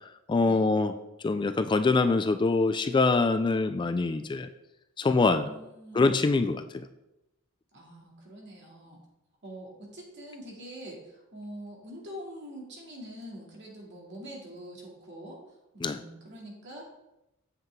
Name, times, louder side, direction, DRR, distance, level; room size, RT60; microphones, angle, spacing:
voice 1, 0.3-0.9 1.2-4.5 5.0-5.5 5.9-6.9 15.8-16.0, left 3 dB, 20° left, 9 dB, 0.3 m, -24 dB
voice 2, 5.4-6.6 7.7-9.0 9.4-16.9, equal, 55° right, -2 dB, 2.4 m, -45 dB
8.0 x 7.6 x 3.6 m, 0.92 s
head